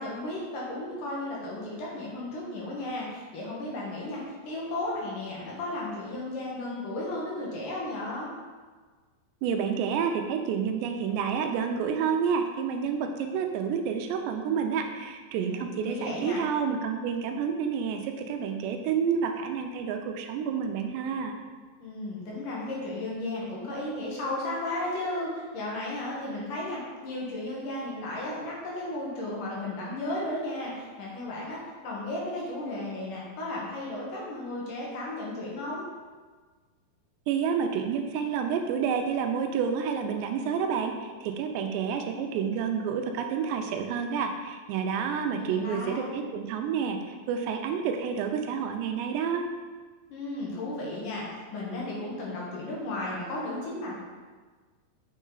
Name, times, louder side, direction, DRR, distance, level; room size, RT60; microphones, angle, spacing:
voice 1, 0.0-8.3 15.5-16.4 21.8-35.8 45.3-46.1 50.1-53.9, left 2 dB, 60° left, -4 dB, 2.6 m, -34 dB
voice 2, 9.4-21.4 37.3-47.0 47.3-49.5, right 6 dB, 90° right, 5 dB, 2.9 m, -29 dB
7.4 x 6.3 x 3.9 m, 1.4 s
omnidirectional pair, 4.8 m